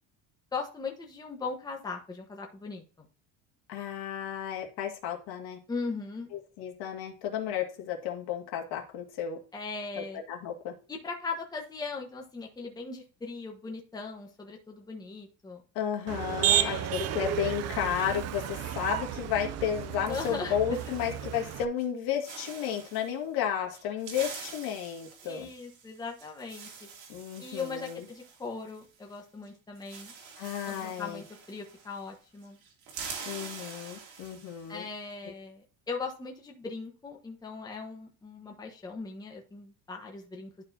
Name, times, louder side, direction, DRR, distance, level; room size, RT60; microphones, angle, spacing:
voice 1, 0.5-2.8 5.7-6.3 9.5-10.2 10.9-15.6 16.4-16.9 20.1-20.6 21.2-21.3 25.2-26.9 27.4-30.1 30.6-32.6 34.7-40.6, left 4 dB, 10° left, 1 dB, 1.2 m, -39 dB
voice 2, 3.7-5.6 6.3-9.4 10.0-10.7 15.8-25.5 27.1-28.1 30.4-31.2 33.2-34.9, left 9 dB, 70° left, 1 dB, 2.1 m, -33 dB
Motor vehicle (road), 16.1-21.6, right 12 dB, 45° right, 0.5 m, -32 dB
sound 1, 19.6-21.5 21.8-22.0 22.2-23.1 23.7-29.2 29.4-29.5 29.8-32.2 32.4-34.8, right 6 dB, 80° right, 3.0 m, -46 dB
11.5 x 4.7 x 2.8 m, 0.37 s
cardioid pair, 165°, 38 cm